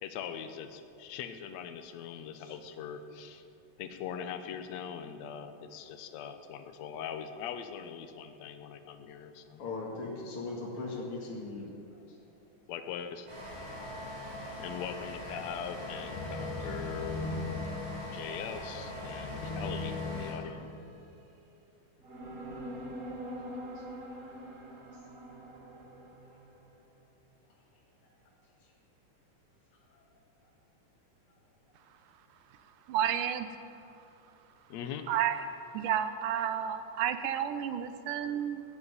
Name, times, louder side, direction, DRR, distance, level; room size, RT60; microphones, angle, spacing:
voice 1, 0.0-3.4 3.8-9.6 12.7-13.3 14.6-17.6 18.1-20.7 34.7-35.0, left 8 dB, 65° left, 7 dB, 2.0 m, -41 dB
voice 2, 9.6-11.7 23.7-23.8, left 3 dB, 45° left, -4 dB, 2.6 m, -38 dB
sound 1, 13.3-20.3, equal, 65° right, 5.9 m, -42 dB
sound 2, 16.1-21.2, left 3 dB, 85° left, 2.7 m, -39 dB
sound 3, 20.3-21.4 22.0-26.7, equal, 45° right, 1.2 m, -44 dB
voice 3, 32.9-33.5 35.1-35.4 35.7-38.6, right 9 dB, 85° right, 10 dB, 2.3 m, -31 dB
15.5 x 9.9 x 9.6 m, 2.7 s
omnidirectional pair, 3.7 m